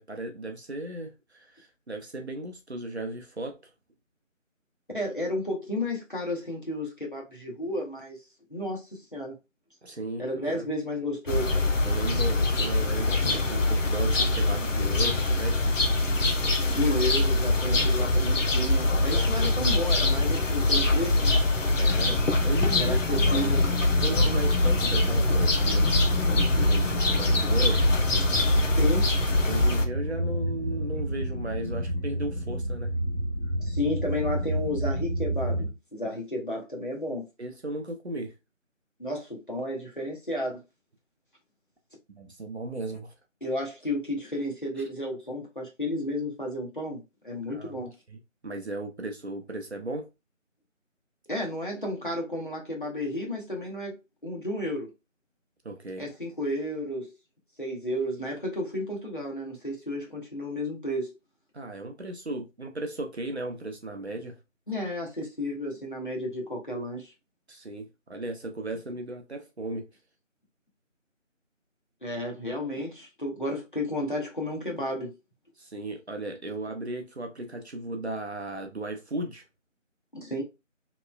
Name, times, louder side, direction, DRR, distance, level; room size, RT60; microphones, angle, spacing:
voice 1, 0.0-3.6 9.8-10.2 10.5-10.7 11.8-15.6 21.8-23.5 24.0-25.9 26.3-27.8 29.4-32.9 37.4-38.3 42.1-43.1 47.5-47.8 48.1-48.2 48.4-50.1 55.6-56.1 61.5-64.4 67.5-69.9 75.6-79.4, right 2 dB, 55° right, 0.6 m, -36 dB
voice 2, 4.9-8.2 8.5-9.3 10.2-11.6 16.7-21.4 22.7-23.6 28.8-29.1 33.6-37.3 39.0-40.6 43.4-47.9 51.3-54.9 56.0-57.1 57.6-61.2 64.7-67.1 72.0-75.1 80.1-80.4, left 1 dB, 40° left, 0.7 m, -32 dB
sound 1, 11.3-29.9, left 2 dB, 70° left, 0.7 m, -24 dB
sound 2, 21.8-35.7, equal, 35° right, 1.0 m, -30 dB
2.9 x 2.1 x 2.2 m
figure-of-eight pair, 175°, 39 cm